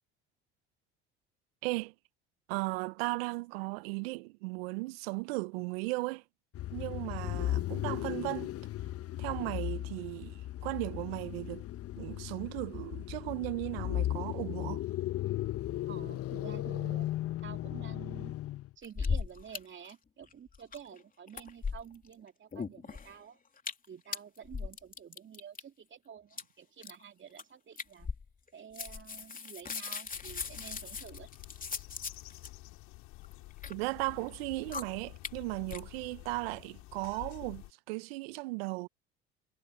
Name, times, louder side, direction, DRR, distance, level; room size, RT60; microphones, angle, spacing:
voice 1, 1.6-1.9 2.5-6.2 6.7-8.5 9.2-11.6 12.0-14.8 33.7-38.9, right 25 dB, 75° right, 1.0 m, -36 dB
sound 1, 6.5-18.7, left 14 dB, 50° left, 1.3 m, -36 dB
voice 2, 15.9-17.1 17.4-18.4 18.8-23.4 23.9-28.1 28.5-31.3, right 8 dB, 40° right, 3.0 m, -50 dB
sound 2, 18.8-19.6 19.8-19.9 20.2-21.0 21.3-22.1 22.5-23.2 23.6-23.9 24.1-25.6 26.3-26.4 26.8-27.0 27.4-27.5 27.8-28.5 28.7-32.5 33.2-33.7 34.3-34.4 34.7-34.8 35.2-35.3 35.7-35.8, left 5 dB, 25° left, 3.3 m, -37 dB
sound 3, 30.1-37.7, left 20 dB, 65° left, 2.6 m, -50 dB
hypercardioid pair, 70°, 31 cm